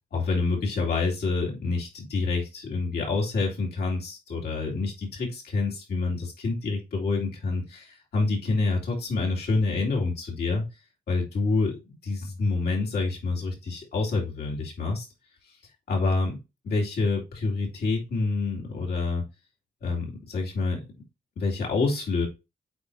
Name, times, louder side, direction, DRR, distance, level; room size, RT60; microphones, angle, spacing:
voice 1, 0.1-10.7 11.1-15.1 15.9-16.4 16.6-19.2 19.8-20.9 21.4-22.3, left 3 dB, 80° left, -2 dB, 2.6 m, -27 dB
8.4 x 4.6 x 2.7 m, 0.27 s
cardioid pair, 105°, 16 cm